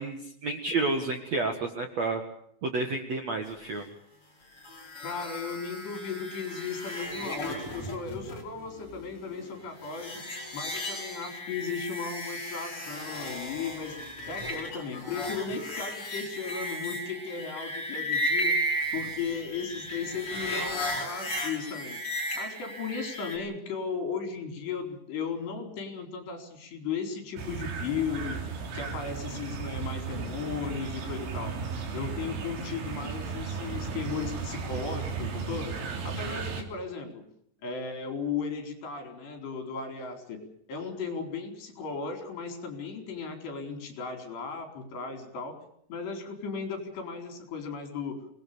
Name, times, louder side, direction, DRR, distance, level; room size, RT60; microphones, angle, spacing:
voice 1, 0.0-2.2 2.6-3.9, right 3 dB, 55° right, 5 dB, 2.1 m, -30 dB
sound 1, 4.6-23.4, equal, 30° left, 6.2 m, -35 dB
voice 2, 5.0-10.2 10.5-14.0 14.3-18.6 18.9-22.0 22.3-28.4 28.7-31.6 31.9-35.8 36.0-37.2 37.6-40.4 40.7-45.6 45.9-48.2, left 5 dB, 65° left, 5 dB, 6.3 m, -36 dB
sound 2, 27.4-36.6, right 5 dB, 80° right, 5.7 m, -35 dB
27.0 x 20.0 x 6.9 m, 0.70 s
omnidirectional pair, 5.3 m